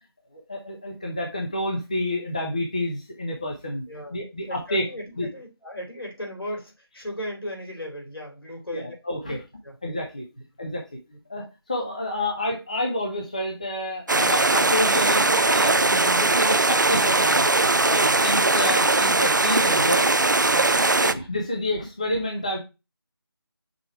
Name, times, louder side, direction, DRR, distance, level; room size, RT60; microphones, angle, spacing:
voice 1, 0.3-3.8 4.1-4.9 5.2-5.3 8.7-9.4 9.8-10.3 10.6-10.8 11.3-17.5 17.8-20.1 20.5-20.7 21.0-22.6, left 1 dB, 15° left, 0 dB, 0.6 m, -29 dB
voice 2, 3.9-4.2 4.5-9.0 9.2-9.8 10.3-10.4 11.1-11.2 18.6-18.8 20.7-21.1, left 1 dB, 70° left, 0 dB, 3.8 m, -37 dB
sound 1, 14.1-21.1, right 3 dB, 50° right, 0.5 m, -20 dB
6.1 x 4.3 x 4.6 m, 0.27 s
figure-of-eight pair, 165°, 13 cm